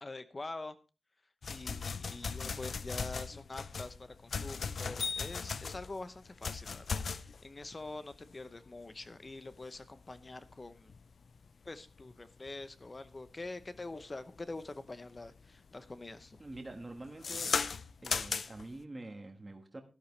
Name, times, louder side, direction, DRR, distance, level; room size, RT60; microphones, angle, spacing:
voice 1, 0.0-0.8 1.5-11.0 11.6-16.4, left 2 dB, 25° left, 12 dB, 0.8 m, -45 dB
sound 1, 1.4-14.7 15.2-15.6 15.8-18.7, left 5 dB, 65° left, 0.5 m, -38 dB
voice 2, 16.4-17.5 18.0-19.8, right 2 dB, 20° right, 5 dB, 1.5 m, -46 dB
13.5 x 12.0 x 3.3 m, 0.34 s
wide cardioid pair, 165°, 0 cm